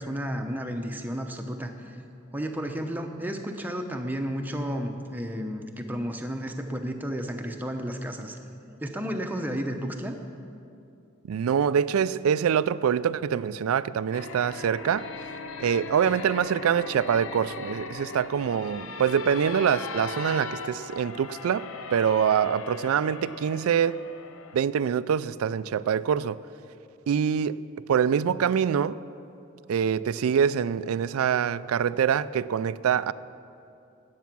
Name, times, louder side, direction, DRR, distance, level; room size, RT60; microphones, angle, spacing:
voice 1, 0.0-2.0 2.3-8.4 8.8-10.1, equal, 10° right, 0.7 m, -32 dB
voice 2, 11.3-15.1 15.6-24.0 24.5-26.4 27.1-27.6 27.9-29.0 29.7-33.1, right 8 dB, 90° right, 0.3 m, -25 dB
sound 1, 14.1-24.6, left 4 dB, 75° left, 0.7 m, -38 dB
14.5 x 9.4 x 6.1 m
head